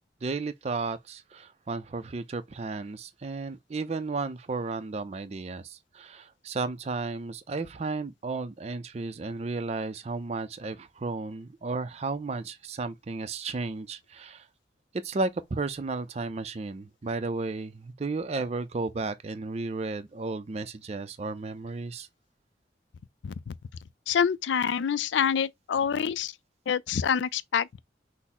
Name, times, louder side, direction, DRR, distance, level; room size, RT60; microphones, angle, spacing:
voice 1, 0.2-14.5 15.0-22.1, right 3 dB, 35° right, 0.4 m, -33 dB
voice 2, 23.2-23.5 24.1-26.3 26.7-27.8, left 7 dB, 85° left, 0.4 m, -27 dB
5.9 x 2.0 x 4.1 m
head